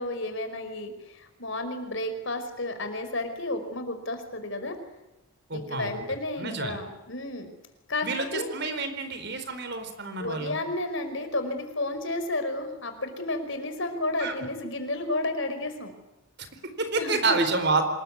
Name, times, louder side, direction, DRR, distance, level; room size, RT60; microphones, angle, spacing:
voice 1, 0.0-4.7 5.5-7.5 7.9-8.1 8.3-8.5 10.1-15.9 16.9-17.4, left 2 dB, 55° left, 7 dB, 5.0 m, -32 dB
voice 2, 5.5-6.0 6.4-6.8 8.0-10.6 14.2-14.3 16.4-17.8, right 3 dB, 50° right, 9 dB, 4.3 m, -29 dB
27.0 x 21.0 x 9.6 m, 0.98 s
head